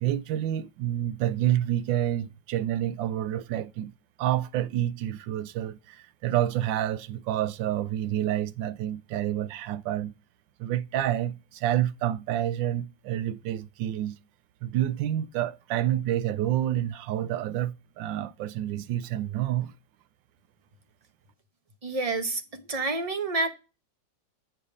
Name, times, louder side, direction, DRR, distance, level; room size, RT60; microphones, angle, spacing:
voice 1, 0.0-3.9 4.2-10.1 10.6-14.2 14.6-19.7, right 12 dB, 85° right, 1.3 m, -28 dB
voice 2, 21.8-23.5, right 3 dB, 30° right, 0.7 m, -28 dB
8.4 x 5.5 x 4.9 m
omnidirectional pair, 2.0 m